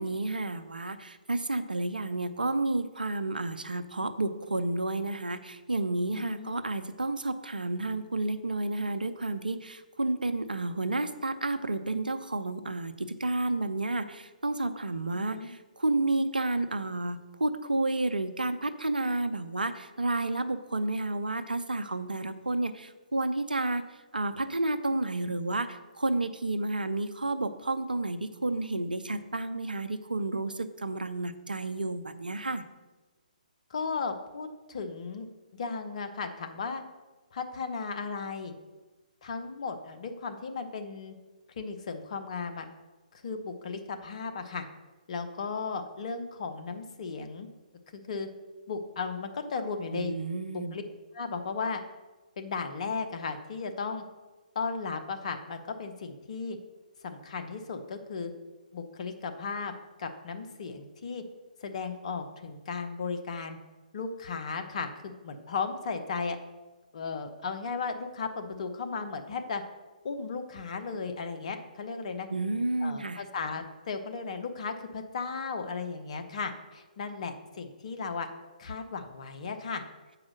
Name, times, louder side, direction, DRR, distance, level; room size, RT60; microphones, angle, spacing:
voice 1, 0.0-32.6 49.9-50.8 72.3-73.2, right 2 dB, 80° right, 10 dB, 0.6 m, -31 dB
voice 2, 6.1-6.6 15.1-15.5 33.7-35.3 35.5-36.8 37.3-38.5 39.2-41.1 41.6-42.7 43.1-44.7 45.1-47.5 47.9-48.3 48.7-50.1 50.5-50.8 51.1-51.8 52.4-54.0 54.5-56.6 57.0-58.3 58.7-59.7 60.0-61.2 61.6-63.6 63.9-66.4 66.9-69.6 70.0-72.3 72.8-78.3 78.6-79.8, left 5 dB, 50° left, 7 dB, 0.9 m, -35 dB
7.2 x 4.9 x 6.3 m, 1.2 s
figure-of-eight pair, 135°, 5 cm